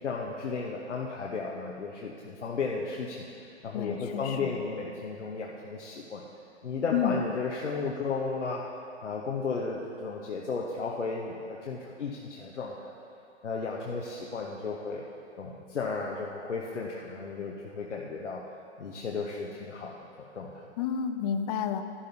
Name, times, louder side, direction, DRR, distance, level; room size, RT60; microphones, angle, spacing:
voice 1, 0.0-3.3 3.6-6.2 6.6-8.7 9.0-12.9 13.4-15.0 15.4-18.4 18.8-20.1 20.3-20.7, left 4 dB, 85° left, -2 dB, 1.0 m, -34 dB
voice 2, 3.7-4.6 6.9-7.2 20.8-21.8, left 8 dB, 35° left, 8 dB, 0.6 m, -30 dB
13.0 x 11.0 x 2.7 m, 2.6 s
hypercardioid pair, 120°, 35 cm